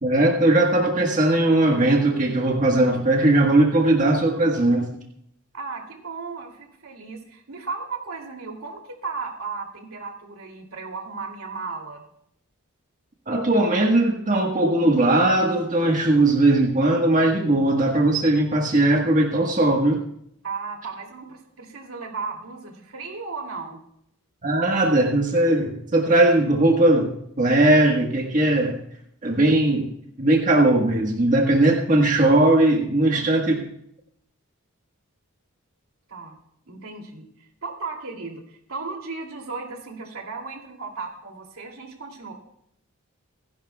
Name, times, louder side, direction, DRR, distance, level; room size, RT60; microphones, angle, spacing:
voice 1, 0.0-4.9 13.3-20.0 24.4-28.8 29.2-29.9 30.2-33.6, right 2 dB, 40° right, 0 dB, 1.4 m, -19 dB
voice 2, 5.5-12.0 20.4-23.8 33.1-33.3 36.1-36.4 36.7-37.3 37.6-42.3, right 4 dB, 80° right, 2 dB, 2.7 m, -35 dB
27.0 x 11.0 x 2.3 m, 0.73 s
head